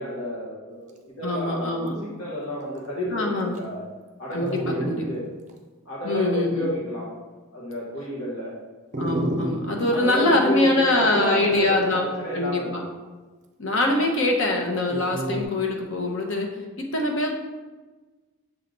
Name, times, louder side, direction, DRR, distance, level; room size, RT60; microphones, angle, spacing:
voice 1, 0.0-3.8 4.2-5.2 5.8-7.1 7.5-8.5 9.9-12.9, equal, 80° left, -5 dB, 1.4 m, -30 dB
voice 2, 1.2-1.9 3.1-3.6 4.3-5.1 6.0-6.7 9.0-12.1 12.3-12.8 13.6-16.5 16.8-17.3, left 2 dB, 60° left, 1 dB, 0.9 m, -23 dB
Dog, 1.4-1.5 1.8-2.1 2.8-2.9 3.5-3.6 4.4-5.0 5.5-5.6 8.9-10.0 11.4-12.0 14.9-15.4, right 1 dB, 35° right, 0.5 m, -30 dB
7.2 x 3.3 x 3.9 m, 1.3 s
head